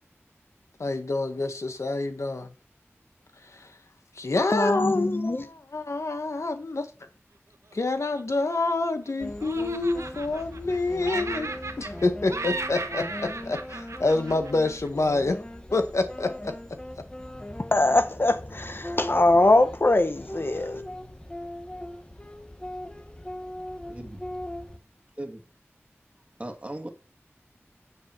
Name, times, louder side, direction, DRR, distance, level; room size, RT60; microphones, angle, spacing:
voice 1, 0.8-2.5 3.5-3.7 4.2-6.9 7.7-11.5 11.8-15.4 15.7-16.5, left 2 dB, 80° left, 1.5 m, -27 dB
voice 2, 4.5-5.5 17.7-20.8, left 2 dB, 50° left, 1.2 m, -22 dB
Laughter, 7.8-9.1 9.4-10.8 11.0-12.0 12.3-14.9, right 3 dB, 85° right, 1.2 m, -36 dB
sound 1, 9.2-24.8, left 1 dB, 20° left, 1.4 m, -40 dB
voice 3, 23.9-24.2 25.2-25.4 26.4-26.9, right 1 dB, 25° right, 2.1 m, -37 dB
8.7 x 7.4 x 4.5 m
wide cardioid pair, 45°, 5 cm